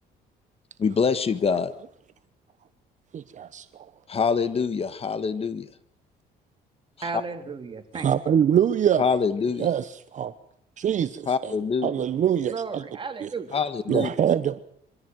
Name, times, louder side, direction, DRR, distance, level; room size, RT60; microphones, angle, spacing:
voice 1, 0.8-1.7 4.1-5.7 7.0-7.2 9.0-9.7 11.3-11.9 13.5-14.1, left 5 dB, 35° left, 1.7 m, -25 dB
voice 2, 3.1-3.9 7.9-9.1 9.6-10.3 10.8-11.5 11.8-12.8 13.2-13.3 13.9-14.6, right 9 dB, 45° right, 1.1 m, -24 dB
voice 3, 7.0-8.1 12.5-13.5, right 5 dB, 30° right, 3.3 m, -34 dB
24.5 x 15.5 x 9.4 m
cardioid pair, 110°, 17 cm